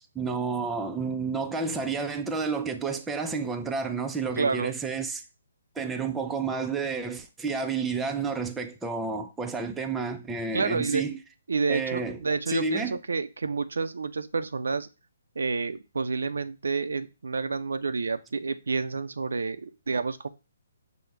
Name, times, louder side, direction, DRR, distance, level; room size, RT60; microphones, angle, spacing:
voice 1, 0.0-5.2 5.8-11.2 11.7-12.2 12.5-13.0, right 4 dB, 5° right, 0.3 m, -30 dB
voice 2, 4.4-4.7 10.5-11.0 11.5-14.9 15.4-20.3, right 4 dB, 85° right, 0.4 m, -29 dB
5.2 x 2.1 x 4.5 m
hypercardioid pair, 160°, 0 cm